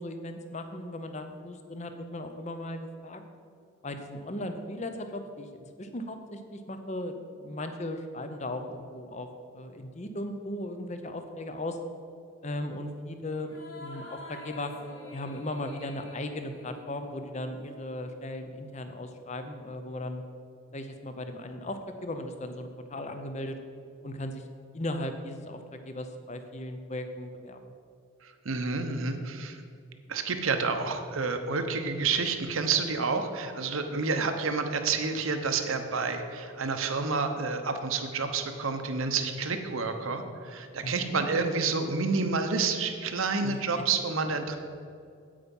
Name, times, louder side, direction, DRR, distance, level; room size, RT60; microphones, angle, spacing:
voice 1, 0.0-3.2 3.8-9.3 9.5-11.8 12.4-14.7 15.1-20.2 20.7-23.6 24.0-24.4 24.7-25.6 25.9-27.6 40.8-41.2 43.4-43.6, left 1 dB, 35° left, 7 dB, 0.7 m, -37 dB
sound 1, 13.4-18.2, left 2 dB, 70° left, 1.2 m, -47 dB
voice 2, 28.2-29.6 30.1-44.6, right 4 dB, 75° right, 6 dB, 0.9 m, -29 dB
8.7 x 8.4 x 5.3 m, 2.4 s
head